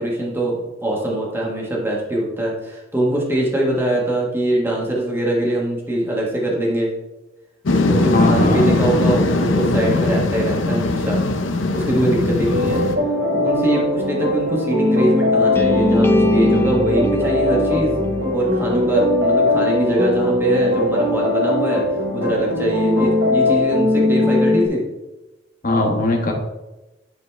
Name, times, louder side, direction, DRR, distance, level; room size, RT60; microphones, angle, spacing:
voice 1, 0.0-6.9 7.9-11.3 11.7-12.8 13.1-17.9 18.3-21.8 22.1-24.8, right 1 dB, 10° right, -3 dB, 1.4 m, -22 dB
sound 1, 7.7-13.0, left 2 dB, 70° left, 0.7 m, -19 dB
voice 2, 8.1-8.8 25.6-26.3, left 2 dB, 45° left, 1 dB, 1.5 m, -19 dB
sound 2, 12.5-24.7, left 2 dB, 65° right, 1.5 m, -19 dB
sound 3, 15.5-19.6, right 1 dB, 15° left, 0.6 m, -23 dB
11.5 x 4.1 x 3.4 m, 1.0 s
head